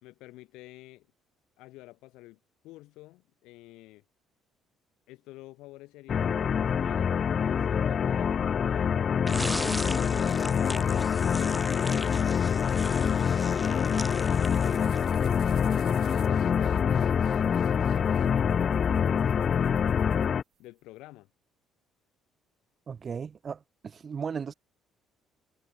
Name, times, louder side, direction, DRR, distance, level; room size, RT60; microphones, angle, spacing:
voice 1, 0.0-1.1 1.6-4.0 5.1-9.0 16.3-20.0 20.6-21.3, left 19 dB, 85° left, 3.9 m, -50 dB
sound 1, 6.1-20.4, left 7 dB, 35° left, 0.3 m, -26 dB
sound 2, 9.3-15.1, equal, ahead, 1.8 m, -38 dB
sound 3, 10.3-20.8, right 12 dB, 55° right, 6.1 m, -57 dB
voice 2, 22.9-24.5, right 6 dB, 30° right, 1.8 m, -36 dB
cardioid pair, 145°, 0 cm